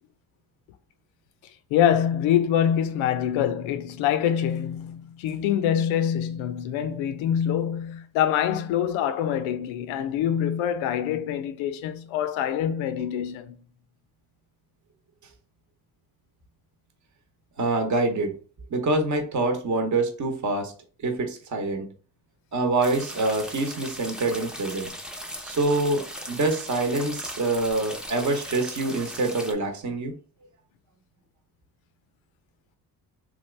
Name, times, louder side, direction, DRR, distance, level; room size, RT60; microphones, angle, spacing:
voice 1, 1.7-13.5, left 9 dB, 70° left, 0.6 m, -25 dB
voice 2, 17.6-18.3 18.7-20.7 21.0-21.9 22.5-24.9 25.4-30.1, right 2 dB, 35° right, 0.9 m, -25 dB
sound 1, 22.8-29.5, equal, ahead, 0.5 m, -38 dB
2.9 x 2.5 x 3.2 m
supercardioid pair, 60°, 49 cm